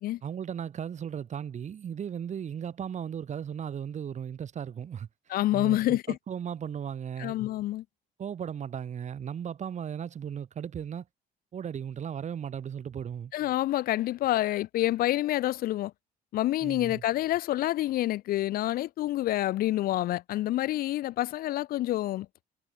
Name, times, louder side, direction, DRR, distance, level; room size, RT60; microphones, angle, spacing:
voice 1, 0.2-5.1 5.5-6.0 6.3-7.3 8.2-11.1 11.5-13.3 16.6-17.0, right 8 dB, 45° right, 2.4 m, -36 dB
voice 2, 5.3-6.2 7.2-7.8 13.3-15.9 16.3-22.3, left 15 dB, 60° left, 0.4 m, -28 dB
cardioid pair, 110°, 17 cm